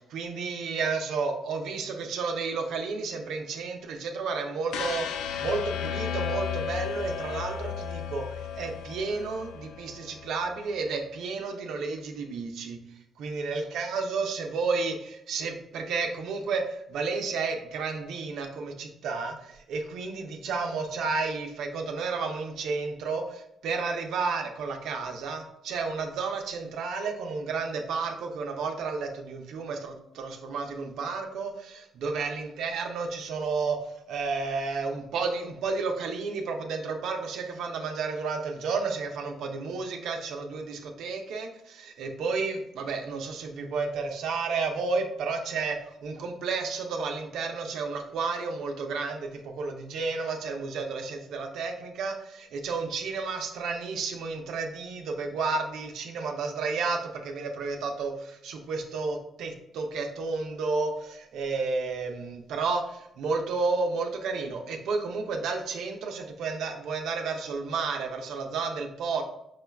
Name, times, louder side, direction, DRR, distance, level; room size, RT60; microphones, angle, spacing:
voice 1, 0.0-8.2 8.6-12.8 13.2-33.8 34.1-45.8 46.0-69.2, right 4 dB, 80° right, 3 dB, 0.5 m, -32 dB
sound 1, 4.7-10.8, left 8 dB, 85° left, 0.3 m, -34 dB
4.9 x 2.3 x 3.2 m, 0.80 s
cardioid pair, 90°, 0 cm